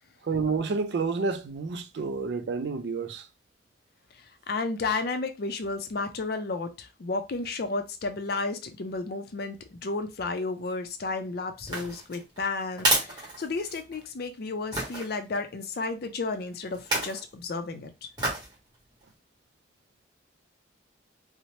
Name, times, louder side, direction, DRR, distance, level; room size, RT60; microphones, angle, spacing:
voice 1, 0.2-3.3, right 4 dB, 65° right, 0.4 m, -29 dB
voice 2, 4.2-17.9, left 3 dB, 60° left, 0.4 m, -32 dB
sound 1, 11.6-14.0 14.7-15.1 16.7-17.2 18.2-18.5 19.0-19.1, right 1 dB, 25° right, 1.1 m, -29 dB
2.7 x 2.0 x 3.0 m
head